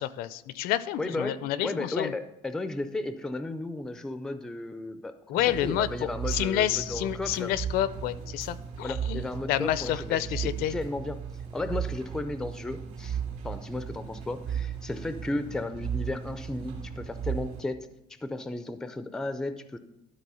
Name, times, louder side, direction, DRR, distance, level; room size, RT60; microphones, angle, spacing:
voice 1, 0.0-2.1 5.3-9.2 9.5-10.7, left 12 dB, 75° left, 16 dB, 0.5 m, -29 dB
voice 2, 1.0-7.5 8.8-11.2 11.5-13.2 13.4-17.8 18.1-19.8, left 2 dB, 5° left, 10 dB, 0.3 m, -34 dB
sound 1, 5.4-17.6, right 8 dB, 60° right, 2.4 m, -36 dB
12.0 x 4.1 x 5.5 m, 0.89 s
cardioid pair, 180°, 15 cm